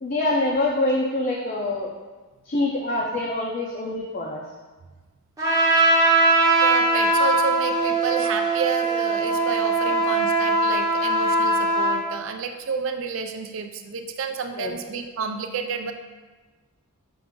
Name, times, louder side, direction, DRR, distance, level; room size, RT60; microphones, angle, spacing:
voice 1, 0.0-1.9 2.4-4.4 9.9-10.0 14.6-14.7, left 2 dB, 40° left, -3 dB, 0.4 m, -25 dB
Trumpet, 5.4-12.0, right 2 dB, 15° right, 0.7 m, -20 dB
voice 2, 6.6-15.9, right 5 dB, 60° right, 6 dB, 0.4 m, -30 dB
5.9 x 2.5 x 3.6 m, 1.3 s
head